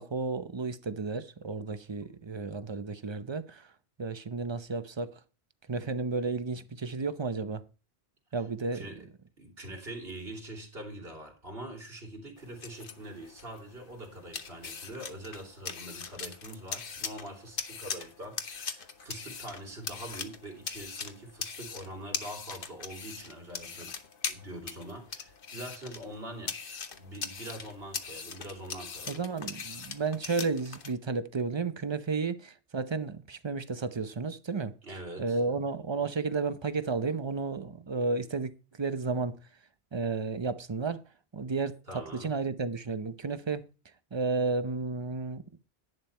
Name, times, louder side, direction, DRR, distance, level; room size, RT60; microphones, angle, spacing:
voice 1, 0.0-3.7 4.0-5.2 5.7-7.6 8.3-8.8 29.1-39.4 39.9-41.0 41.3-43.7 44.1-45.4, right 4 dB, 30° right, 0.7 m, -32 dB
voice 2, 9.4-23.9 24.3-26.5 27.0-29.8 34.8-35.4 41.9-42.3, right 1 dB, 65° right, 3.3 m, -44 dB
sound 1, 12.4-30.9, left 5 dB, 55° left, 1.2 m, -41 dB
11.0 x 9.1 x 4.4 m
omnidirectional pair, 1.1 m